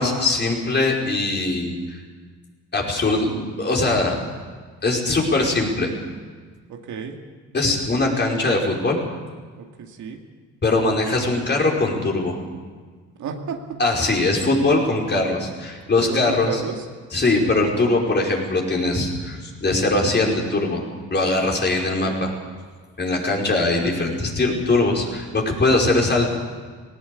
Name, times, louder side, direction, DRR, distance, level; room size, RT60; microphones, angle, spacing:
voice 1, 0.0-2.0 2.7-4.1 4.8-5.9 7.5-9.0 10.6-12.4 13.8-16.6 17.1-20.8 21.1-22.3 23.0-26.3, left 2 dB, 35° left, -1 dB, 5.1 m, -21 dB
voice 2, 6.7-7.2 9.6-10.2 13.2-13.8 15.9-16.9 21.8-22.2, right 6 dB, 70° right, 3 dB, 2.3 m, -32 dB
18.5 x 17.5 x 8.4 m, 1.5 s
cardioid pair, 90°, 30 cm